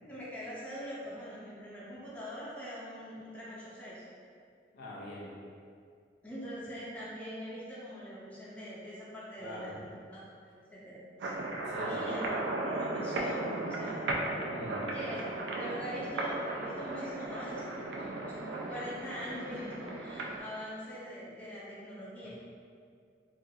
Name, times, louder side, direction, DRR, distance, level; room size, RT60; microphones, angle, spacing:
voice 1, 0.1-4.0 6.2-10.2 10.5-11.0 11.8-14.1 14.9-22.3, equal, 10° left, -9 dB, 0.5 m, -43 dB
voice 2, 4.7-5.3 9.4-9.7 11.6-12.0 14.5-14.9 22.2-22.3, left 1 dB, 60° left, -5 dB, 0.5 m, -44 dB
sound 1, 11.2-20.4, right 2 dB, 75° right, 0.3 m, -36 dB
2.4 x 2.3 x 2.7 m, 2.3 s
head